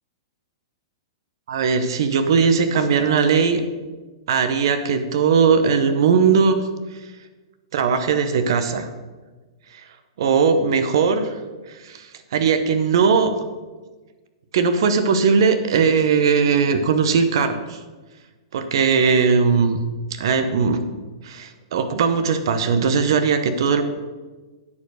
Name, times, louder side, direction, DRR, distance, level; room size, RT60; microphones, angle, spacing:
voice 1, 1.5-3.6 4.3-6.6 7.7-8.9 9.7-9.8 10.2-11.4 11.7-13.3 14.5-17.8 18.5-19.8 20.1-20.8 21.2-23.8, right 5 dB, 65° right, 9 dB, 1.0 m, -19 dB
9.8 x 4.7 x 6.5 m, 1.3 s
hypercardioid pair, 120°, 3 cm